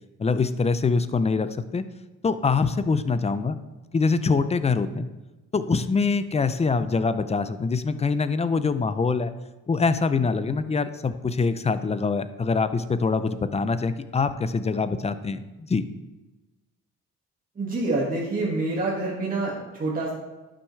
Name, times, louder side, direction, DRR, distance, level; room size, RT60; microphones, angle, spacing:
voice 1, 0.2-1.8 2.2-3.5 3.9-5.1 5.5-9.3 9.7-15.4 15.7-15.8, left 4 dB, 20° left, 12 dB, 0.5 m, -24 dB
voice 2, 17.6-20.1, right 2 dB, 30° right, -5 dB, 2.0 m, -27 dB
11.0 x 6.3 x 3.3 m, 1.1 s
cardioid pair, 90°, 30 cm